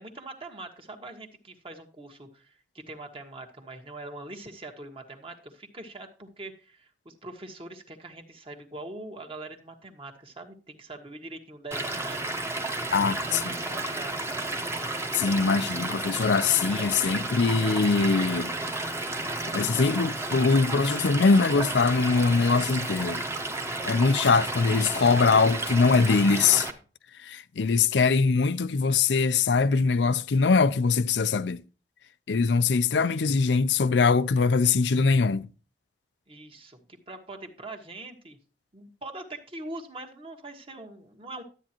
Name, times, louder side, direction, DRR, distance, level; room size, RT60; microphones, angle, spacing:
voice 1, 0.0-14.1 36.3-38.4 38.7-41.4, right 2 dB, 30° right, 1.5 m, -43 dB
Stream / Liquid, 11.7-26.7, right 2 dB, 15° right, 1.1 m, -32 dB
voice 2, 12.9-13.4 15.1-18.5 19.5-23.2 23.9-26.7 27.2-31.6 32.3-35.5, left 4 dB, 85° left, 0.5 m, -22 dB
12.5 x 8.8 x 2.9 m
head